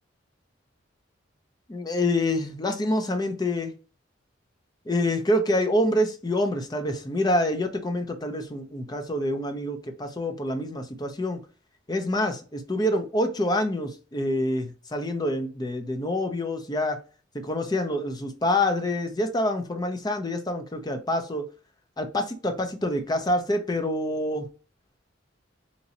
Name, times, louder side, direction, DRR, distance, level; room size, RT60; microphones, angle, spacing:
voice 1, 1.7-3.7 4.9-11.4 11.9-17.0 17.3-21.4 22.0-24.5, left 1 dB, 20° left, 6 dB, 0.5 m, -26 dB
2.9 x 2.7 x 4.0 m, 0.35 s
head